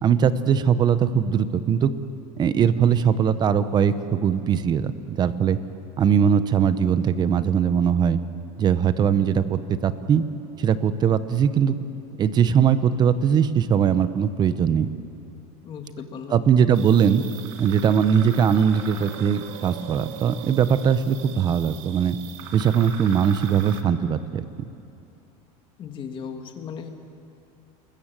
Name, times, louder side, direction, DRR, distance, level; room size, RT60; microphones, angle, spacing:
voice 1, 0.0-1.9 2.4-5.6 6.0-8.2 8.6-10.2 10.6-11.8 12.2-14.9 16.3-17.2 17.6-22.2 22.5-24.6, right 7 dB, 25° right, 13 dB, 0.9 m, -20 dB
voice 2, 15.6-16.4 25.8-26.9, left 6 dB, 30° left, 5 dB, 2.2 m, -36 dB
sound 1, 16.7-23.8, right 8 dB, 75° right, 2.1 m, -40 dB
28.5 x 21.0 x 7.6 m, 2.7 s
supercardioid pair, 155°, 17 cm